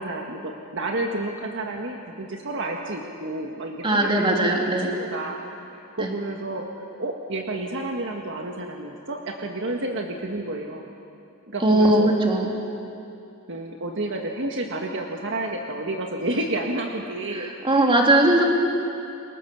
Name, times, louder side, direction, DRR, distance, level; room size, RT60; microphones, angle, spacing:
voice 1, 0.0-5.4 5.7-6.7 7.0-10.8 11.5-12.1 13.5-18.4, right 2 dB, 60° right, 1 dB, 1.8 m, -31 dB
voice 2, 3.8-4.9 6.0-6.1 11.6-12.5 17.3-18.4, right 1 dB, 25° right, 0 dB, 3.4 m, -19 dB
29.5 x 23.0 x 7.1 m, 2.7 s
head